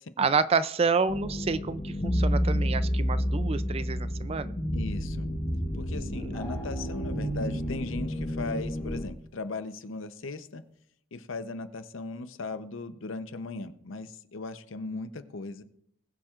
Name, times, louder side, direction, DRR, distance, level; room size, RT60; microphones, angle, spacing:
voice 1, 0.2-4.5 6.1-6.4, right 5 dB, 30° right, 15 dB, 0.3 m, -28 dB
sound 1, 1.1-9.0, equal, 35° left, 1.5 m, -30 dB
voice 2, 4.7-5.3 5.8-10.6 11.1-15.6, left 3 dB, 65° left, 11 dB, 0.7 m, -38 dB
sound 2, 6.3-7.9, left 1 dB, 15° left, 3.6 m, -48 dB
20.5 x 7.4 x 2.4 m, 0.74 s
head